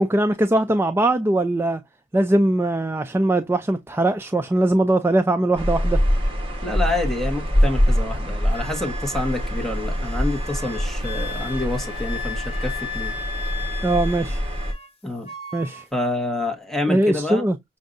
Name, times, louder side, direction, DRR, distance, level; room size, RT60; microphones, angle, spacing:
voice 1, 0.0-1.8 2.1-6.0 13.8-14.4 15.5-15.8 16.9-17.6, right 1 dB, 15° right, 0.3 m, -20 dB
sound 1, 5.6-14.7, equal, 30° right, 1.5 m, -24 dB
voice 2, 6.6-13.2 15.0-15.3 15.9-17.5, left 2 dB, ahead, 1.2 m, -27 dB
Wind instrument woodwind instrument, 8.5-14.9 15.2-15.9, left 4 dB, 35° left, 1.1 m, -36 dB
6.3 x 2.6 x 2.5 m
head